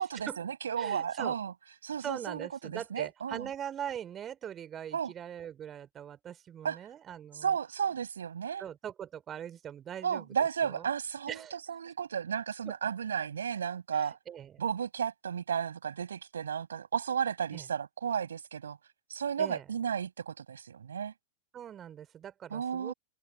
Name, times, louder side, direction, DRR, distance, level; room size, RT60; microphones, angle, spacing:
voice 1, 0.0-1.5 1.8-3.5 4.9-5.1 6.6-6.8 7.4-8.7 10.0-14.2 14.6-18.8 19.1-21.1 22.5-22.9, right 7 dB, 70° right, 5.2 m, -33 dB
voice 2, 0.8-1.4 2.0-7.5 8.6-10.3 10.6-10.9 11.3-11.6 12.7-12.8 13.9-14.6 17.5-17.7 19.4-19.7 21.5-22.9, right 9 dB, 25° right, 3.6 m, -41 dB
figure-of-eight pair, 90°, 0 cm